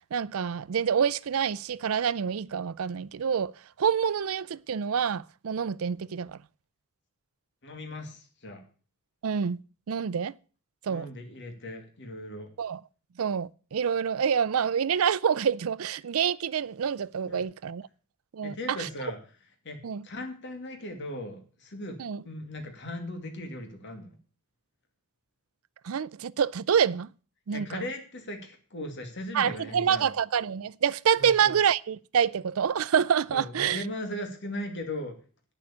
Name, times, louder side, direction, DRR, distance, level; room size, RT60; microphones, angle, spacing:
voice 1, 0.1-3.5 3.8-6.4 9.2-9.6 9.9-10.3 10.8-11.1 12.6-12.8 13.2-17.9 18.3-18.9 19.8-20.0 22.0-22.2 25.8-27.1 27.5-27.8 29.3-33.8, right 7 dB, 75° right, 0.5 m, -27 dB
voice 2, 7.6-8.6 10.9-12.5 17.3-17.4 18.4-19.2 19.6-22.0 22.2-24.2 27.5-30.1 31.2-31.5 33.3-35.1, left 1 dB, 55° left, 2.4 m, -38 dB
9.8 x 7.0 x 8.6 m
head